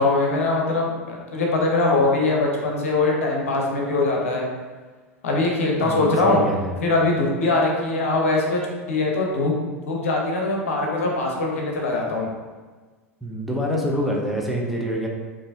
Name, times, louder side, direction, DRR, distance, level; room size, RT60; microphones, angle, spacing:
voice 1, 0.0-4.5 5.2-6.4 6.8-8.6 8.9-9.5 9.9-12.3, left 2 dB, 65° left, -1 dB, 0.8 m, -22 dB
voice 2, 5.8-6.8 13.2-15.1, equal, ahead, -2 dB, 0.6 m, -26 dB
5.3 x 2.6 x 2.6 m, 1.4 s
figure-of-eight pair, 85°, 8 cm